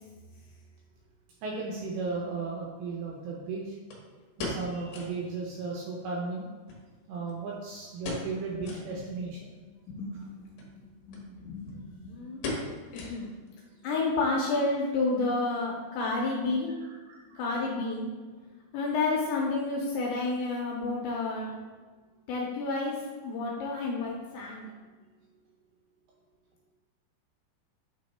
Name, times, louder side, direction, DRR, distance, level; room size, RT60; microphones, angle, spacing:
voice 1, 1.4-3.8 4.4-6.5 7.1-9.5 16.8-17.4, right 4 dB, 80° right, -2 dB, 2.7 m, -35 dB
sound 1, 1.8-1.9 3.9-5.2 5.6-5.7 5.9-6.0 6.7-7.5 8.0-8.4 8.6-8.9 9.4-9.5 10.5-10.7 11.1-11.2 11.5-11.9 12.4-13.5 13.8-13.9 14.5-14.8 15.1-15.2, left 2 dB, 65° left, 2.6 m, -38 dB
voice 2, 9.9-10.3 11.1-12.4 12.9-13.3 13.8-16.8 17.4-18.1 18.7-21.5 22.3-24.7, left 3 dB, 80° left, -2 dB, 2.7 m, -30 dB
9.1 x 3.1 x 4.2 m, 1.4 s
omnidirectional pair, 5.9 m